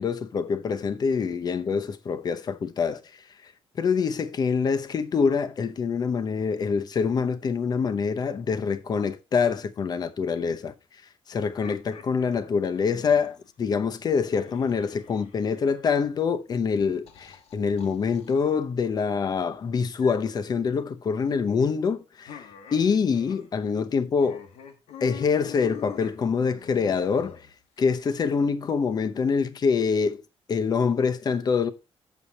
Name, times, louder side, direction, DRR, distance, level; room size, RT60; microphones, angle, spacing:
voice 1, 0.0-3.5 3.8-10.7 11.3-22.4 22.7-24.4 25.0-27.5 27.8-30.2 30.5-31.7, left 5 dB, 40° left, 0.8 m, -25 dB
sound 1, 11.4-13.4 14.4-15.8 16.7-18.4 20.0-20.4 22.3-23.5 23.8-23.9 24.2-27.8, left 8 dB, 85° left, 1.6 m, -45 dB
7.9 x 7.2 x 4.2 m
cardioid pair, 135°, 10 cm